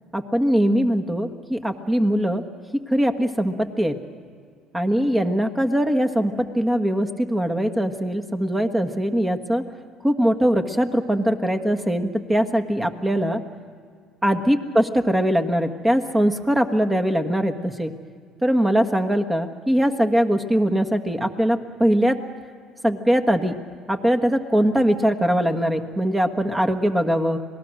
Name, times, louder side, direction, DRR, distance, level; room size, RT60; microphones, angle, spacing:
voice 1, 0.1-2.4 2.7-4.0 4.7-9.6 10.0-13.4 14.2-17.9 18.4-22.2 22.8-23.5 23.9-27.4, equal, 15° right, 6 dB, 1.5 m, -21 dB
26.5 x 18.5 x 6.3 m, 2.1 s
supercardioid pair, 75°, 0 cm